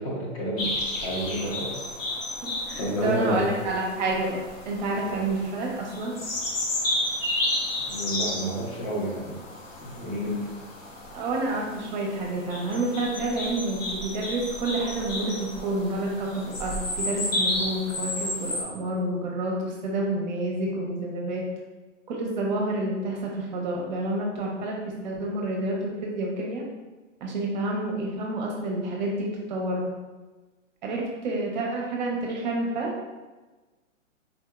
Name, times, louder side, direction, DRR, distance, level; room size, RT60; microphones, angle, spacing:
voice 1, 0.0-1.8 2.8-3.6 5.0-5.2 7.8-9.4 9.8-10.4, equal, 25° left, -4 dB, 0.6 m, -30 dB
sound 1, 0.6-18.6, left 1 dB, 80° left, 0.8 m, -32 dB
voice 2, 2.4-4.4 4.7-6.1 11.1-21.4 22.1-26.6 27.2-29.9 30.8-32.9, right 2 dB, 35° right, -1 dB, 0.6 m, -29 dB
3.7 x 2.7 x 2.3 m, 1.2 s
hypercardioid pair, 125°, 38 cm